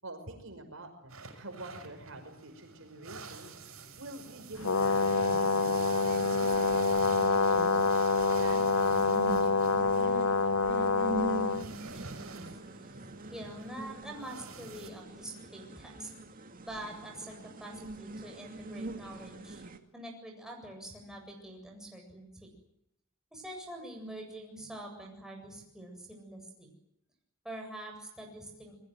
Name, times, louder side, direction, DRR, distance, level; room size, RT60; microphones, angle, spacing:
voice 1, 0.0-3.7 4.0-7.9 8.2-10.0, right 2 dB, 65° right, 5 dB, 5.5 m, -47 dB
sound 1, 1.1-14.9, right 4 dB, 80° right, 6.4 m, -48 dB
Brass instrument, 4.6-11.7, left 4 dB, 80° left, 1.0 m, -26 dB
sound 2, 4.6-19.8, right 1 dB, 40° right, 2.2 m, -43 dB
voice 2, 11.9-13.0 13.3-16.1 16.6-19.6 19.9-22.5 23.3-26.7 27.4-28.8, right 1 dB, 5° right, 1 dB, 7.9 m, -45 dB
29.5 x 21.5 x 7.8 m, 0.81 s
head